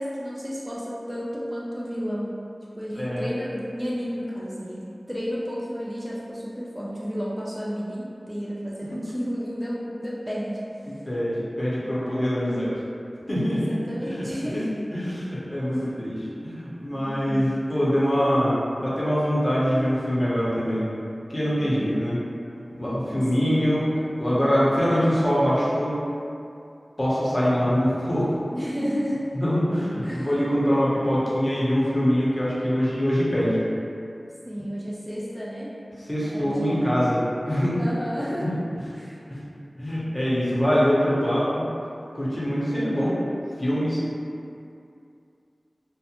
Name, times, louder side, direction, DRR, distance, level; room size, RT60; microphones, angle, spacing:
voice 1, 0.0-2.5 2.8-10.6 13.4-14.7 16.9-17.6 21.6-21.9 23.1-23.7 28.5-29.3 30.0-30.4 34.4-35.7 36.2-36.9 37.8-38.5 38.9-39.2, equal, 10° right, -7 dB, 0.4 m, -32 dB
voice 2, 3.0-3.3 10.9-12.7 13.3-13.8 14.0-14.3 14.9-20.9 21.3-22.2 22.8-26.0 27.0-28.4 29.3-33.6 36.1-37.8 38.4-38.6 39.3-39.4 39.8-41.6 42.1-43.2 43.6-44.0, equal, 30° left, -9 dB, 0.7 m, -24 dB
2.4 x 2.1 x 2.8 m, 2.5 s
wide cardioid pair, 50°, 0 cm